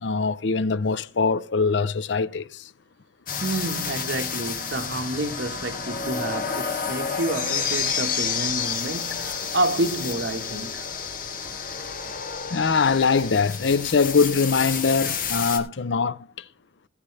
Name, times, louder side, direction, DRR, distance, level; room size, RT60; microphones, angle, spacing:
voice 1, 0.0-2.7 12.5-16.4, left 5 dB, 85° left, 0.6 m, -22 dB
sound 1, 3.3-15.6, left 6 dB, 50° left, 1.7 m, -30 dB
voice 2, 3.4-10.9, right 2 dB, 80° right, 1.4 m, -29 dB
18.0 x 8.3 x 3.3 m
head